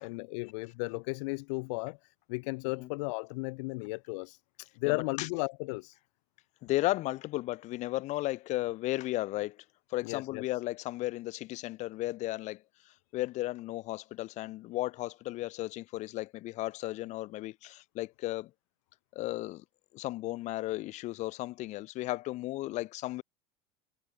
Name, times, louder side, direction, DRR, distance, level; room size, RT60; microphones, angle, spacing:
voice 1, 0.0-6.0 10.0-10.4, left 30 dB, 70° left, 4.8 m, -35 dB
voice 2, 4.8-5.3 6.6-9.6 9.9-18.5 19.1-19.6 19.9-23.2, left 17 dB, 50° left, 6.8 m, -35 dB
supercardioid pair, 150°, 16 cm